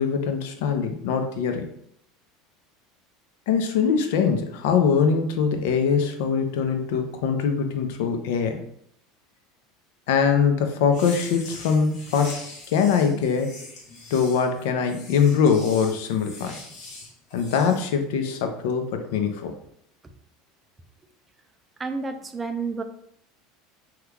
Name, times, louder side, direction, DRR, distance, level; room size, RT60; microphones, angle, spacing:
voice 1, 0.0-1.6 3.5-8.6 10.1-12.4 12.7-13.5 14.1-16.5 17.3-19.5, left 6 dB, 80° left, 6 dB, 0.5 m, -22 dB
sound 1, 10.9-17.8, left 2 dB, 55° left, 1.1 m, -42 dB
voice 2, 21.8-22.8, right 4 dB, 15° right, 7 dB, 0.3 m, -30 dB
3.0 x 2.3 x 3.4 m, 0.70 s
supercardioid pair, 145°, 0 cm